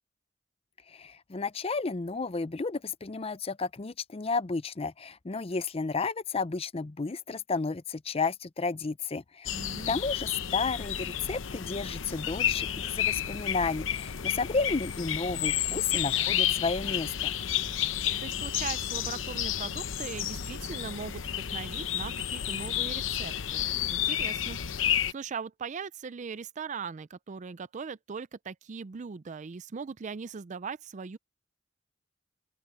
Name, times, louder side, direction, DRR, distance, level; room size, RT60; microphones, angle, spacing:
voice 1, 0.9-9.5 9.9-17.3, left 4 dB, 30° left, 0.5 m, -32 dB
sound 1, 9.5-25.1, left 10 dB, 90° left, 0.8 m, -31 dB
voice 2, 9.5-10.0 18.2-31.2, right 5 dB, 40° right, 0.4 m, -40 dB
open air
head